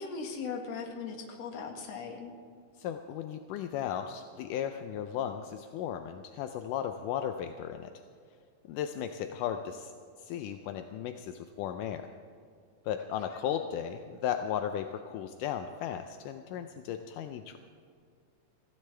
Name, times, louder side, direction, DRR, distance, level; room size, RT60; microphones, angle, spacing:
voice 1, 0.0-2.3 13.3-13.4, left 5 dB, 55° left, 2 dB, 2.6 m, -39 dB
voice 2, 2.8-7.9 8.7-9.9 10.2-12.1 12.9-17.6, left 9 dB, 80° left, 7 dB, 2.2 m, -35 dB
24.5 x 15.5 x 3.4 m, 2.3 s
omnidirectional pair, 3.7 m